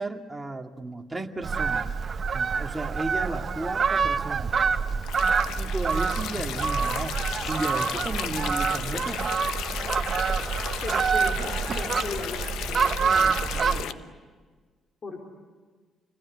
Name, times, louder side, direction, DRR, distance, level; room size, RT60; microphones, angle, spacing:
voice 1, 0.0-1.9 2.3-4.5 5.6-7.2 7.5-9.3, right 2 dB, 15° right, 2 dB, 2.4 m, -34 dB
Fowl, 1.4-13.8, right 6 dB, 45° right, 1.0 m, -27 dB
sound 1, 5.0-13.9, left 10 dB, 90° left, 1.0 m, -34 dB
sound 2, 5.7-7.7 8.2-11.0, equal, 5° left, 3.4 m, -48 dB
voice 2, 10.8-14.0 15.0-15.2, left 3 dB, 45° left, 0 dB, 4.1 m, -38 dB
28.5 x 21.0 x 9.9 m, 1.5 s
cardioid pair, 90°, 0 cm